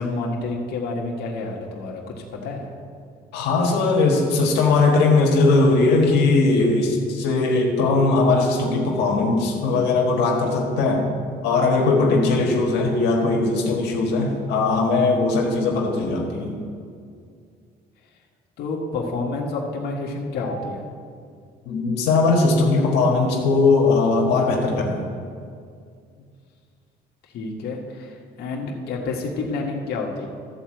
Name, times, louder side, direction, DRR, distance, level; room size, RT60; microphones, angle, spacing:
voice 1, 0.0-2.7 18.6-20.9 26.2-26.3 27.2-30.3, left 3 dB, 70° left, -2 dB, 1.6 m, -29 dB
voice 2, 3.3-11.0 11.4-16.5 20.4-20.6 21.7-25.0, left 3 dB, 90° left, -1 dB, 1.6 m, -19 dB
13.5 x 4.6 x 7.7 m, 2.2 s
cardioid pair, 110°, 17 cm